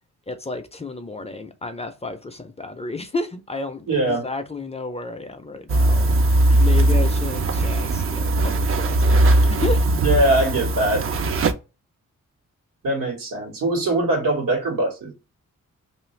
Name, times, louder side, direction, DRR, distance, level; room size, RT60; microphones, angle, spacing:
voice 1, 0.3-9.2 9.5-9.9, left 3 dB, 20° left, 0.4 m, -32 dB
voice 2, 3.9-4.2 10.0-11.1 12.8-15.1, right 2 dB, 90° right, 1.4 m, -22 dB
sound 1, 5.7-11.5, right 2 dB, 45° right, 0.4 m, -19 dB
2.8 x 2.5 x 3.1 m
wide cardioid pair, 125°, 32 cm